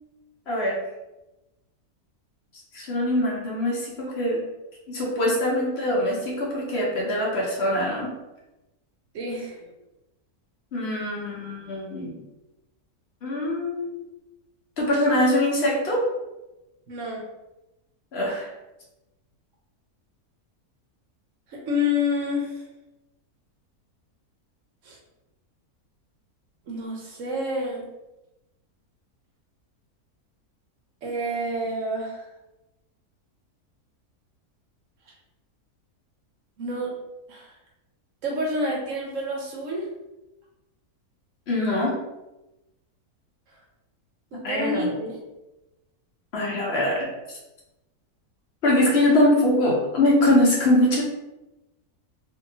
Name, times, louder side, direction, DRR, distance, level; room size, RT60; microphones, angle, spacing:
voice 1, 0.5-0.8 2.7-4.5 4.9-8.1 10.7-12.2 13.2-14.0 14.8-16.0 18.1-18.5 41.5-42.0 44.4-45.1 46.3-47.1 48.6-51.0, left 1 dB, 55° left, -3 dB, 0.8 m, -23 dB
voice 2, 9.1-9.6 16.9-17.2 21.5-22.6 24.8-25.0 26.7-27.9 31.0-32.3 36.6-36.9 37.3-37.5 38.2-39.9 44.3-44.9, left 2 dB, 65° right, -1 dB, 0.9 m, -28 dB
2.7 x 2.6 x 2.7 m, 0.97 s
omnidirectional pair, 1.6 m